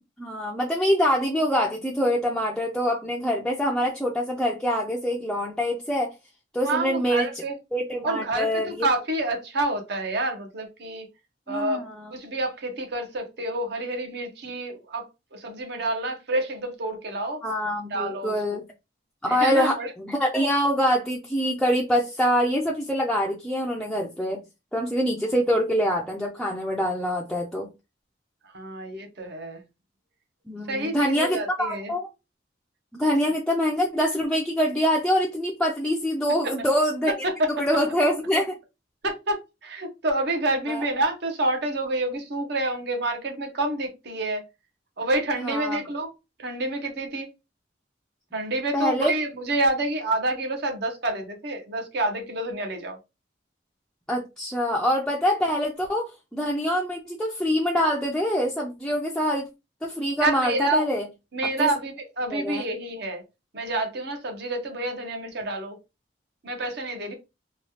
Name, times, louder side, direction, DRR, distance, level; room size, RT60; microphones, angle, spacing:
voice 1, 0.2-6.1 6.5-7.3 7.7-8.9 11.5-12.1 17.4-18.7 19.3-24.4 24.7-27.7 30.5-32.1 32.9-37.1 37.6-38.6 40.7-40.8 45.4-45.8 48.7-49.1 54.1-59.5 59.8-61.0 61.4-61.7 62.3-62.6, equal, 5° left, 0.4 m, -25 dB
voice 2, 6.6-7.6 8.0-11.1 11.5-11.8 12.1-15.1 15.3-17.4 17.9-18.3 19.3-19.9 28.5-29.6 30.7-31.9 37.2-37.5 39.0-44.4 45.0-46.1 46.4-47.3 48.3-53.0 60.2-60.9 61.3-63.2 63.5-65.8 66.4-67.1, right 2 dB, 65° right, 0.8 m, -28 dB
3.0 x 2.3 x 2.8 m
head